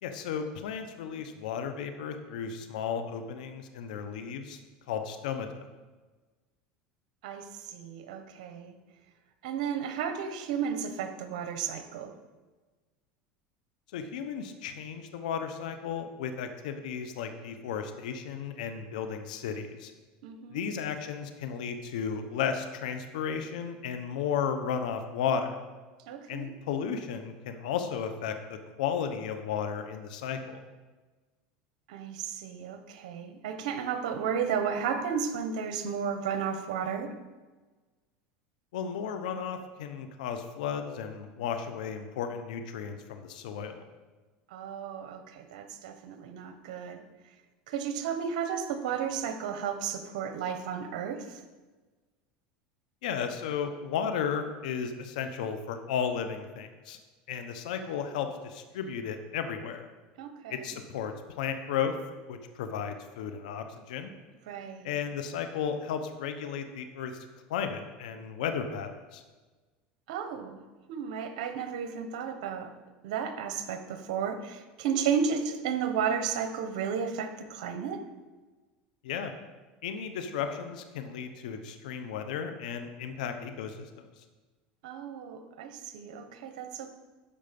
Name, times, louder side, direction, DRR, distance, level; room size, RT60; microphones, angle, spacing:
voice 1, 0.0-4.6 4.9-5.7 13.9-19.9 20.5-25.6 26.3-30.6 38.7-43.9 53.0-57.0 57.3-59.9 60.5-61.9 62.3-64.1 64.8-67.2 67.5-69.2 79.0-79.3 79.8-83.9, left 7 dB, 85° left, 7 dB, 0.9 m, -34 dB
voice 2, 7.2-8.7 9.4-12.1 20.2-20.6 26.1-26.5 31.9-37.1 44.5-47.0 47.7-51.4 60.2-60.7 64.5-64.9 70.1-70.6 70.9-72.7 73.0-78.0 84.8-86.9, right 7 dB, 80° right, 8 dB, 1.2 m, -33 dB
12.5 x 5.1 x 5.3 m, 1.3 s
supercardioid pair, 125°, 4 cm